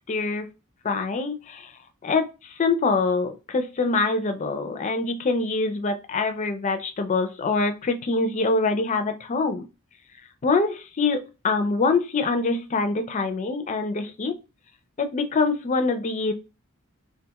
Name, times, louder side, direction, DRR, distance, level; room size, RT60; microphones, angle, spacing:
voice 1, 0.1-0.5 0.8-1.7 2.0-9.6 10.4-14.4 15.0-16.3, left 3 dB, 35° left, 0.4 m, -24 dB
2.5 x 2.3 x 2.8 m
head